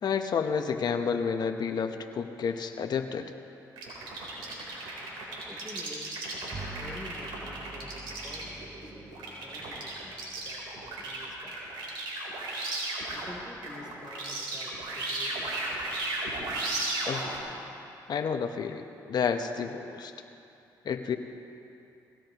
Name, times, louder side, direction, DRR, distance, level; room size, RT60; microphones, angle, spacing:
voice 1, 0.0-3.3 17.1-17.3 18.1-20.1 20.8-21.2, left 6 dB, 60° left, 6 dB, 1.1 m, -30 dB
sound 1, 3.8-13.3 13.6-17.4, right 2 dB, 85° right, 3.9 m, -35 dB
voice 2, 5.5-6.3 6.7-11.7 12.1-12.7 13.1-15.7, left 1 dB, 10° right, -2 dB, 3.5 m, -48 dB
Bowed string instrument, 6.5-12.2, right 3 dB, 45° right, 1.3 m, -48 dB
21.5 x 17.0 x 3.1 m, 2.7 s
cardioid pair, 70°, 8 cm